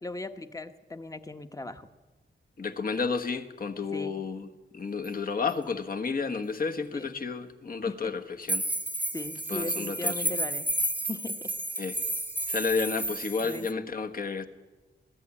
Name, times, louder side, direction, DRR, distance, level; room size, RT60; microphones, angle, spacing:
voice 1, 0.0-1.9 3.9-4.2 6.9-7.1 7.9-8.1 9.1-10.7 11.1-11.5 13.4-13.7, left 2 dB, 15° left, 10 dB, 1.1 m, -38 dB
voice 2, 2.6-8.7 9.5-10.4 11.8-11.9 12.5-14.5, left 5 dB, 45° left, 6 dB, 1.4 m, -31 dB
sound 1, 5.0-5.1 5.5-5.6 8.5-13.7, right 1 dB, 10° right, 1.0 m, -31 dB
21.5 x 14.5 x 10.0 m, 1.2 s
wide cardioid pair, 145°, 20 cm